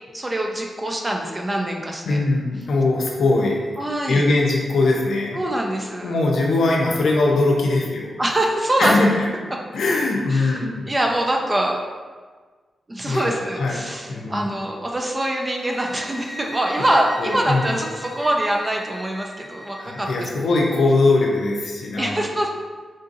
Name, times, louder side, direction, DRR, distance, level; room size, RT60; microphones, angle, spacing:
voice 1, 0.1-2.2 3.8-4.2 5.3-6.1 8.2-9.0 10.3-10.6 10.8-11.8 12.9-20.3 22.0-22.5, right 1 dB, 20° right, 1 dB, 0.4 m, -24 dB
voice 2, 2.1-3.6 4.1-5.5 6.0-8.1 8.8-9.2 9.7-10.8 13.0-14.4 17.2-17.8 19.8-22.2, left 2 dB, 75° left, -1 dB, 0.6 m, -21 dB
sound 1, 15.4-20.3, equal, ahead, 0.9 m, -39 dB
3.7 x 2.6 x 2.6 m, 1.4 s
wide cardioid pair, 120°, 0 cm